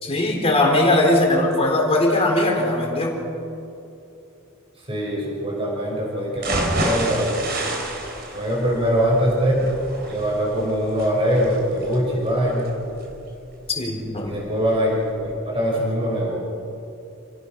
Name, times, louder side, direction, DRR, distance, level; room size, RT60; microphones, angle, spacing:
voice 1, 0.0-3.1 13.7-14.4, left 1 dB, 30° left, 0 dB, 4.1 m, -20 dB
voice 2, 4.8-7.3 8.3-9.7 10.1-12.7 14.2-16.4, equal, 25° right, -3 dB, 5.7 m, -22 dB
sound 1, 6.4-14.3 14.7-14.8 15.2-15.3, right 1 dB, 50° right, 4.0 m, -30 dB
29.0 x 17.0 x 6.1 m, 2.7 s
head